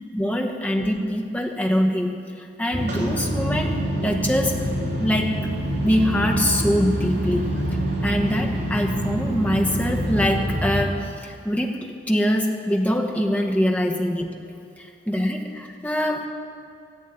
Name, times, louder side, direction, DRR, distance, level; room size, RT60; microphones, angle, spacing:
voice 1, 0.1-4.7 5.0-5.4 5.8-7.5 8.0-14.3 14.8-16.3, equal, 10° left, 2 dB, 1.1 m, -24 dB
sound 1, 2.7-10.8, right 1 dB, 60° right, 3.2 m, -26 dB
15.5 x 8.3 x 8.7 m, 2.6 s
head